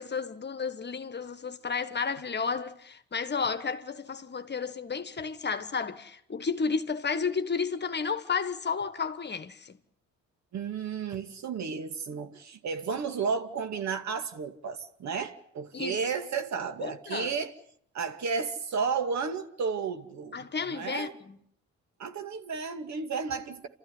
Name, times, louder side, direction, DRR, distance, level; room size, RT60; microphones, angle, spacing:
voice 1, 0.0-9.8 15.7-16.0 16.8-17.4 20.3-21.4, left 5 dB, 35° left, 1.5 m, -32 dB
voice 2, 10.5-17.5 17.9-21.1 22.0-23.7, right 5 dB, 65° right, 2.4 m, -33 dB
28.5 x 14.0 x 9.8 m
cardioid pair, 90°, 30 cm